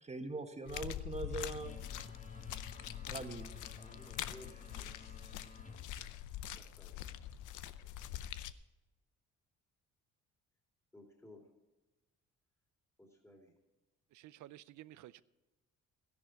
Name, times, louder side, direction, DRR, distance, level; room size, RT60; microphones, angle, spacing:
voice 1, 0.0-1.8 3.1-3.5, right 3 dB, 20° right, 1.5 m, -42 dB
sound 1, 0.7-8.5, left 11 dB, 80° left, 0.7 m, -44 dB
sound 2, 1.5-6.9, left 3 dB, 25° left, 1.4 m, -55 dB
voice 2, 3.8-5.2 6.0-6.2 6.5-7.2 10.9-11.5 13.0-13.6, left 1 dB, 10° left, 2.5 m, -58 dB
voice 3, 14.1-15.2, right 14 dB, 75° right, 0.5 m, -53 dB
14.0 x 10.5 x 4.6 m
cardioid pair, 90°, 30 cm